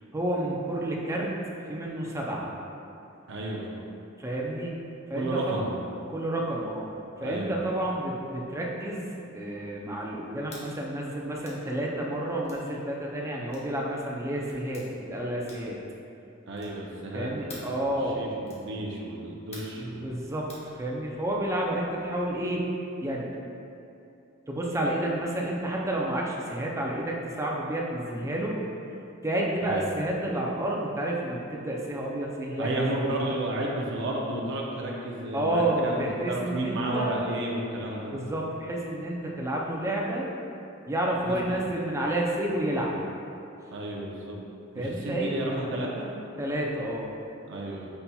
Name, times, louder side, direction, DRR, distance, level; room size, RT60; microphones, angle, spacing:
voice 1, 0.1-1.4 1.6-2.5 4.2-4.7 5.1-5.6 6.1-6.9 7.2-9.1 9.3-15.8 17.1-18.2 19.8-22.6 23.0-23.3 24.5-28.6 29.2-32.7 35.3-37.2 38.1-40.3 40.9-42.9 44.7-45.4 46.4-47.1, right 1 dB, 15° right, -2 dB, 0.5 m, -30 dB
voice 2, 3.3-3.7 5.2-5.7 7.2-7.6 16.5-20.1 29.6-29.9 32.6-38.1 41.3-41.6 43.7-44.4 44.7-46.1 47.5-47.9, right 1 dB, 65° right, -2 dB, 0.6 m, -32 dB
sound 1, 10.4-10.7 11.4-11.6 12.4-12.6 13.5-13.7 14.5-14.9 15.4-15.8 16.5-16.8 17.5-17.8 18.4-18.7 19.5-19.8 20.5-20.7, left 1 dB, 30° left, 0.9 m, -47 dB
5.4 x 4.2 x 2.3 m, 2.7 s
head